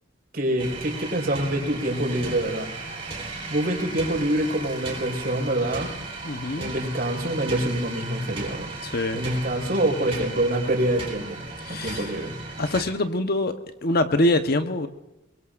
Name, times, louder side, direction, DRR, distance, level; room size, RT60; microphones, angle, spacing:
voice 1, 0.3-2.7 3.5-5.9 6.6-8.7 9.1-12.4, right 1 dB, 55° right, 4.8 m, -26 dB
sound 1, 0.6-12.8, right 3 dB, 30° right, 4.0 m, -36 dB
voice 2, 6.2-6.7 8.8-9.2 11.6-12.1 12.6-14.9, left 1 dB, 55° left, 1.1 m, -24 dB
23.0 x 23.0 x 2.6 m
head